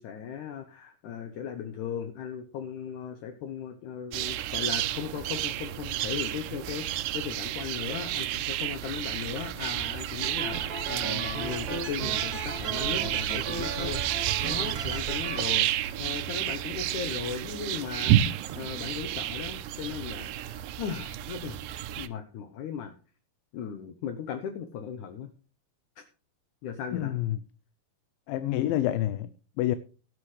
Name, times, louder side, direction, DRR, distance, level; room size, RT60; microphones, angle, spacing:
voice 1, 0.0-21.7 22.0-22.9 23.5-25.3 26.6-27.1, left 8 dB, 70° left, 2.3 m, -37 dB
sound 1, 4.1-22.1, right 13 dB, 80° right, 2.3 m, -31 dB
sound 2, 10.2-15.4, right 3 dB, 50° right, 2.4 m, -36 dB
voice 2, 26.9-27.4 28.3-29.3 29.6-29.8, left 13 dB, 85° left, 2.4 m, -27 dB
17.0 x 8.6 x 3.2 m
omnidirectional pair, 4.1 m